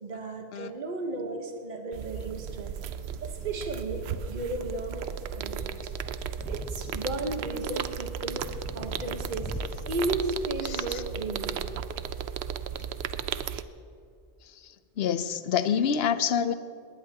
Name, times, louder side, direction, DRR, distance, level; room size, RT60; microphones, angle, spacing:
voice 1, 0.0-2.8 3.2-5.0 5.3-5.9 6.5-8.5 8.7-9.5 9.9-11.7 12.0-12.1, right 2 dB, 45° right, 4 dB, 1.3 m, -34 dB
sound 1, 1.9-13.6, right 8 dB, 80° right, 0.8 m, -35 dB
sound 2, 3.2-10.1, left 1 dB, 10° left, 1.3 m, -42 dB
voice 2, 10.7-11.0 14.6-16.5, left 8 dB, 75° left, 12 dB, 0.9 m, -27 dB
20.5 x 19.0 x 2.9 m, 2.3 s
omnidirectional pair, 1.1 m